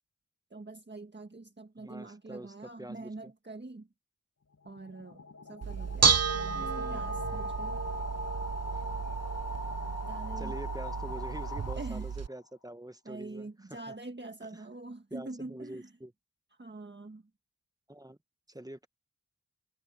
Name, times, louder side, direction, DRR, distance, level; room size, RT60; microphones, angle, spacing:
voice 1, 0.5-3.9 4.6-7.8 10.1-10.6 11.8-12.1 13.0-16.0 16.5-17.3, right 2 dB, 35° right, 1.6 m, -45 dB
voice 2, 1.8-3.3 6.5-7.0 10.4-13.8 15.1-16.1 17.9-18.2 18.5-18.9, right 1 dB, 10° right, 1.2 m, -45 dB
sound 1, 4.5-12.3, left 1 dB, 55° left, 1.9 m, -40 dB
Bell / Dishes pots and pans, 5.6-12.3, right 5 dB, 50° right, 0.7 m, -32 dB
wide cardioid pair, 45°, 33 cm